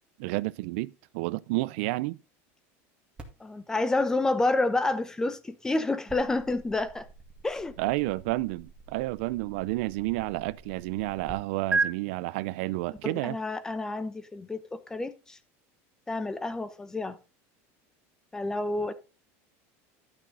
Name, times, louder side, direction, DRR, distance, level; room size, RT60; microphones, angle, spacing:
voice 1, 0.2-2.2 7.8-13.4, right 20 dB, 70° right, 0.5 m, -30 dB
sound 1, 3.2-11.3 11.7-11.9, right 4 dB, 15° right, 1.9 m, -38 dB
voice 2, 3.4-7.1 7.4-7.7 13.0-15.4 16.1-17.2 18.3-18.9, left 2 dB, 10° left, 0.8 m, -29 dB
12.0 x 6.2 x 3.8 m
cardioid pair, 160°, 7 cm